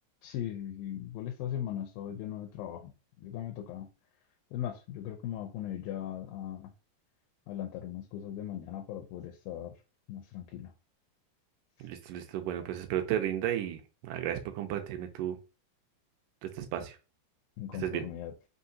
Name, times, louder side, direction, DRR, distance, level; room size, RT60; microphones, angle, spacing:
voice 1, 0.2-2.9 3.2-3.9 4.5-6.7 7.5-9.7 10.1-10.7 17.6-18.3, left 11 dB, 85° left, 2.3 m, -38 dB
voice 2, 11.8-15.4 16.4-17.0 17.7-18.1, right 11 dB, 75° right, 2.1 m, -34 dB
5.6 x 2.8 x 2.7 m
omnidirectional pair, 4.1 m